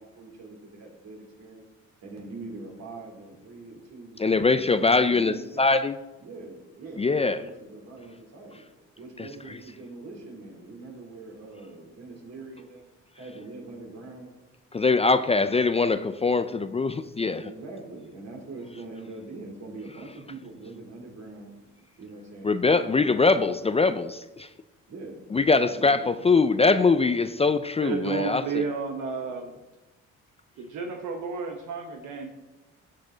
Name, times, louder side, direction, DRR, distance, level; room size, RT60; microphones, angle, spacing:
voice 1, 0.0-1.6 2.0-4.2 4.5-5.7 6.2-8.6 9.0-12.8 13.1-14.3 17.3-23.7 24.9-26.2 29.2-29.5, right 2 dB, 60° right, 0 dB, 3.2 m, -43 dB
voice 2, 4.2-6.0 7.0-7.4 9.2-9.3 14.7-17.4 22.4-24.5 25.3-28.7, left 4 dB, 20° left, 11 dB, 0.4 m, -22 dB
voice 3, 27.8-29.5 30.6-32.3, right 5 dB, 80° right, 3 dB, 1.1 m, -31 dB
12.5 x 7.6 x 3.9 m, 1.1 s
cardioid pair, 90°, 30 cm